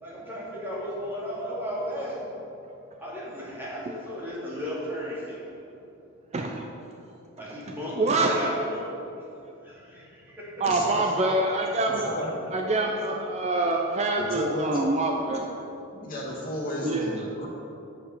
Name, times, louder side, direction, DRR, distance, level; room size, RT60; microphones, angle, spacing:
voice 1, 0.0-2.1 3.0-5.4 7.4-8.8 9.6-10.0 10.4-10.6, equal, 10° right, -7 dB, 2.1 m, -34 dB
voice 2, 6.3-6.7 8.0-8.4 10.6-12.1 12.5-15.6 16.8-17.2, right 2 dB, 30° right, 2 dB, 0.5 m, -25 dB
voice 3, 10.6-11.1 12.0-12.4 14.3-15.0 15.9-17.5, equal, 40° left, -5 dB, 2.0 m, -33 dB
8.0 x 6.7 x 5.4 m, 2.7 s
head